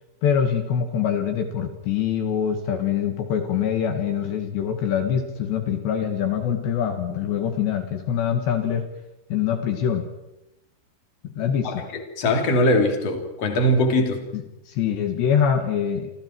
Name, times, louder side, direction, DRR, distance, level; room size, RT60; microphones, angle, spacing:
voice 1, 0.2-8.9 9.3-10.0 11.4-11.8 14.3-16.1, left 8 dB, 70° left, 5 dB, 4.0 m, -24 dB
voice 2, 11.6-14.2, left 1 dB, 35° left, 3 dB, 4.0 m, -21 dB
29.0 x 27.5 x 4.7 m, 0.93 s
omnidirectional pair, 5.3 m